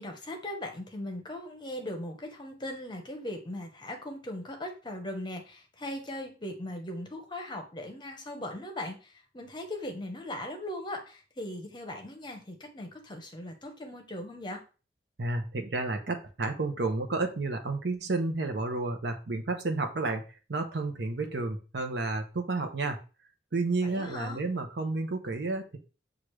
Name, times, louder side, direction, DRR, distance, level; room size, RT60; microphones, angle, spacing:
voice 1, 0.0-14.6 23.8-24.4, left 1 dB, 25° left, 3 dB, 0.8 m, -39 dB
voice 2, 15.2-20.2 20.5-23.0 23.5-25.8, right 3 dB, 65° right, 6 dB, 0.7 m, -31 dB
6.2 x 2.5 x 3.1 m, 0.34 s
head